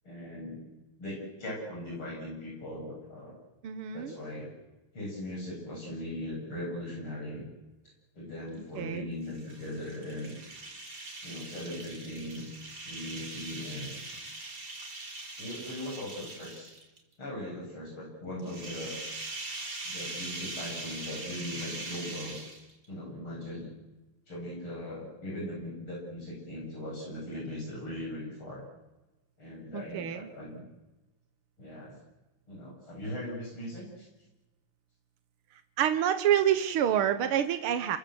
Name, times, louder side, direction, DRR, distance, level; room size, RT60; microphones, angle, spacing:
voice 1, 0.0-0.7 1.0-3.3 3.9-4.5 4.9-7.5 8.1-10.4 11.2-12.5 12.9-13.9 15.4-16.7 17.2-19.0 19.8-22.4 22.9-23.7 24.3-28.6 29.4-30.6 31.6-32.0 32.5-34.1, left 1 dB, 75° left, -3 dB, 9.0 m, -39 dB
voice 2, 3.6-4.1 8.8-9.1 29.7-30.3 35.8-38.0, right 10 dB, 85° right, 10 dB, 2.0 m, -27 dB
sound 1, 9.2-17.0 18.4-22.9, right 2 dB, 50° right, 4.2 m, -41 dB
29.5 x 23.0 x 7.9 m, 1.1 s
omnidirectional pair, 2.3 m